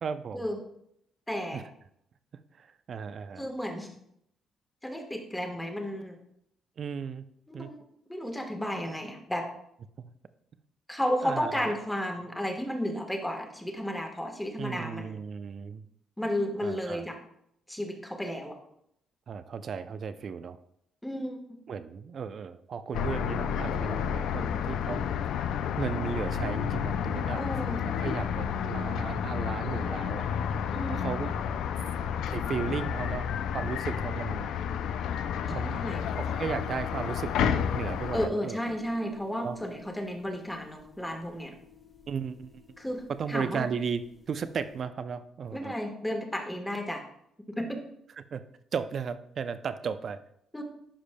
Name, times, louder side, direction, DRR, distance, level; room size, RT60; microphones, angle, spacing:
voice 1, 0.0-0.5 1.5-1.6 2.6-3.4 6.8-7.2 7.5-7.7 10.0-10.1 11.2-11.8 14.6-15.8 16.6-17.1 19.3-20.6 21.7-25.1 25.8-27.4 28.0-30.6 30.9-31.5 32.3-34.5 35.5-38.6 39.4-39.6 42.1-42.6 43.2-45.7 48.2-48.4 48.7-50.2, right 6 dB, 55° right, 12 dB, 0.4 m, -35 dB
voice 2, 1.3-1.6 3.4-3.9 4.8-6.2 7.5-7.8 8.1-9.5 10.9-15.2 16.2-17.2 17.7-18.6 21.0-21.4 27.3-27.8 30.7-31.2 35.5-36.0 38.1-41.5 42.8-43.7 45.5-47.0 47.6-47.8 50.5-50.6, equal, 5° left, 3 dB, 1.3 m, -33 dB
sound 1, 22.9-38.3, left 8 dB, 80° left, 0.3 m, -31 dB
sound 2, 35.9-44.8, left 7 dB, 40° left, 1.0 m, -53 dB
11.5 x 5.0 x 2.2 m, 0.74 s
cardioid pair, 90°, 0 cm